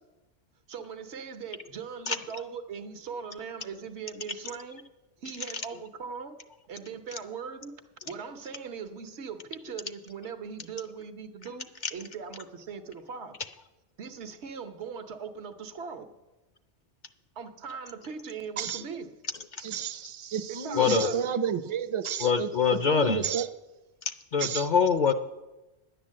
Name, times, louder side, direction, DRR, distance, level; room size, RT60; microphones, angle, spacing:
voice 1, 0.7-4.9 5.2-6.4 6.7-13.4 14.0-16.2 17.4-19.1 20.5-21.2, right 6 dB, 85° right, 1.2 m, -40 dB
voice 2, 19.6-23.5 24.4-24.7, right 7 dB, 40° right, 0.5 m, -31 dB
voice 3, 20.7-21.1 22.2-23.2 24.1-25.1, left 6 dB, 55° left, 0.6 m, -24 dB
10.5 x 9.0 x 7.4 m
omnidirectional pair, 1.1 m